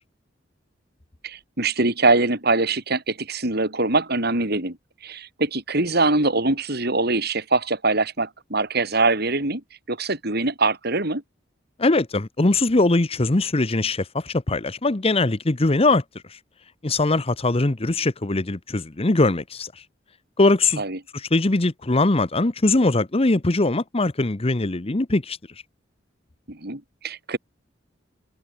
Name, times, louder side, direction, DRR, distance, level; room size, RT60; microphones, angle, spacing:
voice 1, 1.2-4.8 5.0-9.6 9.9-11.2 20.8-21.0 26.5-27.4, right 3 dB, 55° right, 5.5 m, -23 dB
voice 2, 11.8-16.0 16.8-19.7 20.4-20.8 21.3-25.4, left 2 dB, 30° left, 1.0 m, -21 dB
head